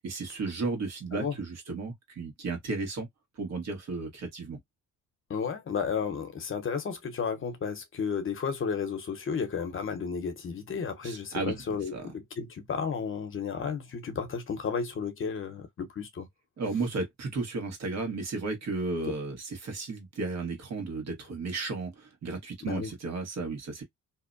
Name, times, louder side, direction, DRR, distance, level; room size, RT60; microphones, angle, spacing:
voice 1, 0.0-3.1 3.4-4.6 11.0-11.6 11.9-12.0 16.6-23.8, right 3 dB, 60° right, 1.3 m, -34 dB
voice 2, 5.3-16.3 22.7-22.9, left 6 dB, 45° left, 0.8 m, -33 dB
2.7 x 2.1 x 2.5 m
cardioid pair, 90°, 30 cm